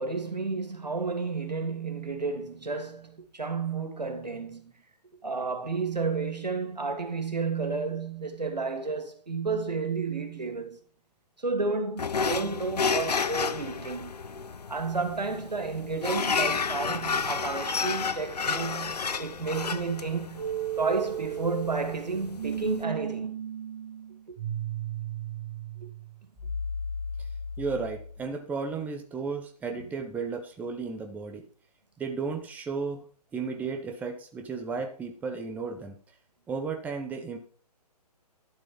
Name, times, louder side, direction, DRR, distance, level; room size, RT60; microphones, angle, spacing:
voice 1, 0.0-4.7 5.2-10.8 11.4-14.1 14.7-20.5 20.8-23.5 25.8-25.9 29.7-29.8, right 4 dB, 85° right, 2.8 m, -31 dB
sound 1, 12.0-22.8, left 5 dB, 70° left, 0.9 m, -31 dB
sound 2, 20.4-28.2, right 5 dB, 30° right, 3.0 m, -35 dB
voice 2, 27.6-31.4 32.0-33.0 33.3-36.0 36.5-37.4, right 4 dB, 5° right, 1.0 m, -34 dB
12.0 x 7.6 x 5.5 m
figure-of-eight pair, 135°, 21 cm